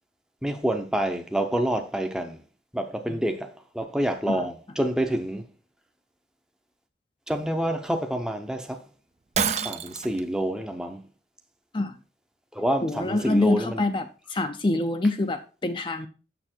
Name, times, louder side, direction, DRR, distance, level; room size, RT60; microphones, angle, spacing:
voice 1, 0.4-2.4 2.7-5.4 7.3-8.8 9.5-11.0 12.5-13.8, right 1 dB, 5° right, 0.7 m, -27 dB
Shatter, 9.3-10.2, right 6 dB, 40° right, 0.5 m, -27 dB
voice 2, 12.8-16.1, left 2 dB, 30° left, 0.6 m, -26 dB
6.8 x 6.8 x 4.4 m
head